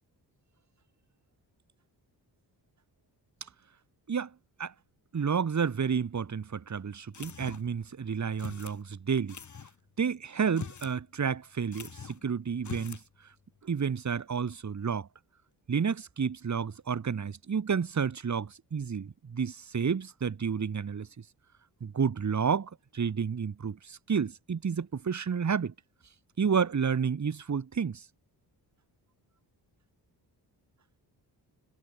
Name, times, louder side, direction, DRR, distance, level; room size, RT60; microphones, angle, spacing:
voice 1, 5.1-9.4 10.0-13.0 13.6-15.1 15.7-21.1 21.8-25.7 26.4-28.0, right 6 dB, 40° right, 2.6 m, -30 dB
sound 1, 7.1-7.8 8.4-8.8 9.3-9.7 10.4-11.0 11.3-11.4 11.7-12.2 12.6-13.1, left 6 dB, 45° left, 3.5 m, -43 dB
cardioid pair, 110°, 41 cm